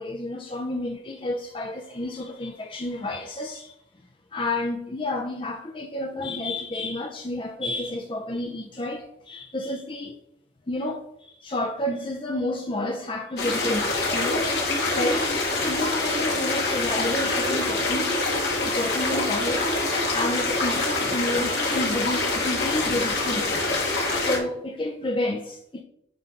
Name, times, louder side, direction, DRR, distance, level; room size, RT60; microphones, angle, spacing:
voice 1, 0.0-3.7 4.3-10.2 10.7-14.5 15.0-15.3 15.6-18.3 18.7-19.7 20.1-23.8 24.2-25.8, left 1 dB, 30° left, 0.6 m, -30 dB
sound 1, 13.4-24.4, left 2 dB, 65° left, 2.3 m, -25 dB
9.8 x 3.5 x 5.1 m
head